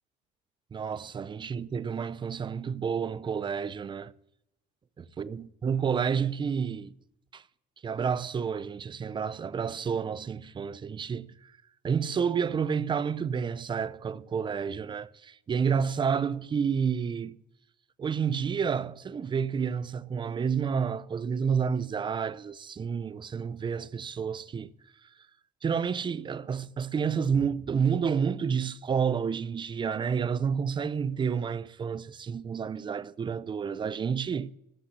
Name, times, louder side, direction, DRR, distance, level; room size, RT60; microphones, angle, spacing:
voice 1, 0.7-4.1 5.0-6.9 7.3-7.4 7.8-11.5 11.8-17.4 18.0-24.7 25.6-34.5, right 6 dB, 30° right, 0.5 m, -30 dB
14.5 x 5.8 x 7.0 m
cardioid pair, 110°, 17 cm